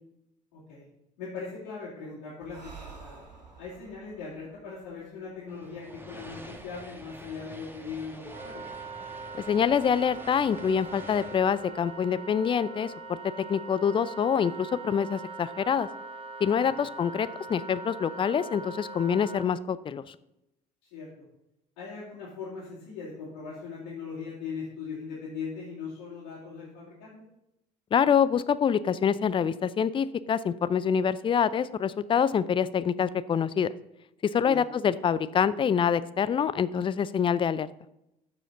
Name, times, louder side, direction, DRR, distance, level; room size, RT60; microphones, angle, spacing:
voice 1, 0.5-0.9 1.2-2.7 3.0-3.2 3.6-8.6 16.7-16.8 20.8-21.1 21.8-27.1 34.4-34.6, left 5 dB, 70° left, -8 dB, 2.7 m, -39 dB
Breathing, 2.4-5.9, right 4 dB, 85° right, 1.0 m, -50 dB
sound 1, 5.5-12.9, right 1 dB, 10° right, 1.3 m, -47 dB
Wind instrument woodwind instrument, 8.2-19.5, right 3 dB, 30° right, 1.0 m, -42 dB
voice 2, 9.3-13.2 13.5-15.9 16.4-20.1 27.9-33.7 34.2-37.7, left 7 dB, 25° left, 16 dB, 0.5 m, -26 dB
14.0 x 5.0 x 3.8 m, 0.86 s
figure-of-eight pair, 55°, 21 cm